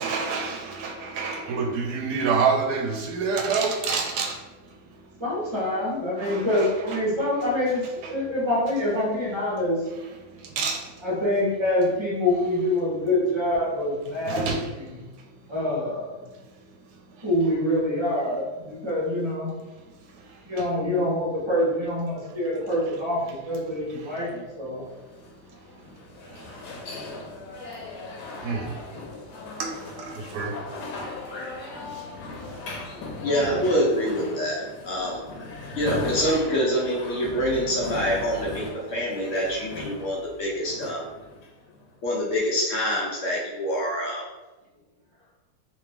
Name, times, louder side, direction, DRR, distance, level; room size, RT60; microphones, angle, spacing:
voice 1, 0.0-5.2 6.2-7.0 8.0-8.3 10.1-11.1 13.0-13.1 14.2-15.5 16.4-17.3 19.7-20.7 23.9-24.3 24.7-32.8 33.1-33.3, right 5 dB, 85° right, 2 dB, 1.2 m, -31 dB
voice 2, 5.2-7.8 8.1-9.8 11.0-14.4 15.5-16.2 17.2-19.5 20.4-24.8, left 1 dB, 20° right, -5 dB, 0.9 m, -25 dB
sound 1, 24.9-41.9, left 3 dB, 90° left, 1.3 m, -38 dB
voice 3, 33.2-35.2 35.8-38.6 38.9-41.0 42.0-44.3, equal, 60° left, -4 dB, 1.0 m, -25 dB
3.4 x 2.9 x 3.4 m, 1.1 s
omnidirectional pair, 1.7 m